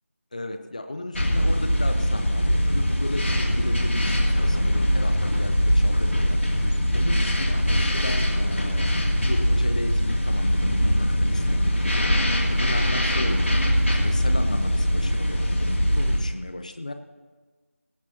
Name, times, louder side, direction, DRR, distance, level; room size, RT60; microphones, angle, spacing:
voice 1, 0.3-6.4 6.9-8.9 9.2-13.5 13.9-16.9, left 2 dB, 30° left, 8 dB, 0.6 m, -35 dB
sound 1, 1.1-16.2, equal, 60° left, 2.4 m, -22 dB
18.5 x 16.0 x 2.8 m, 1.3 s
figure-of-eight pair, 170°, 8 cm